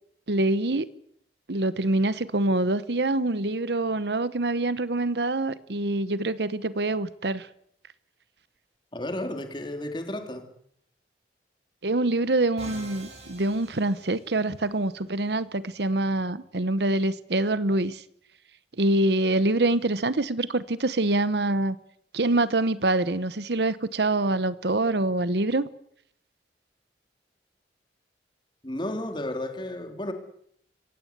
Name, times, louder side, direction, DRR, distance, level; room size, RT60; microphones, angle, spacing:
voice 1, 0.3-0.9 1.5-7.5 11.8-18.0 18.8-21.8 22.1-25.7, right 2 dB, 70° right, 1.0 m, -25 dB
voice 2, 8.9-10.4 28.6-30.1, left 1 dB, 25° left, 3.3 m, -32 dB
Musical instrument, 12.6-14.7, right 2 dB, 35° right, 6.3 m, -44 dB
26.0 x 17.0 x 8.2 m
head